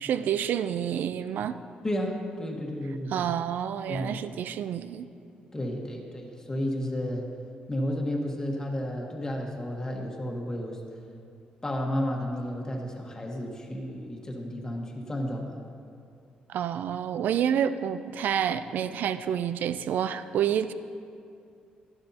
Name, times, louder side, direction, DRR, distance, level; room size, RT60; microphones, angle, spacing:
voice 1, 0.0-1.6 3.1-5.1 16.5-20.7, right 9 dB, 75° right, 12 dB, 0.4 m, -28 dB
voice 2, 1.8-3.2 3.9-4.2 5.5-7.3 7.7-10.8 11.6-15.6, equal, 20° left, 0 dB, 1.5 m, -32 dB
11.5 x 11.5 x 2.9 m, 2.4 s
cardioid pair, 80°, 3 cm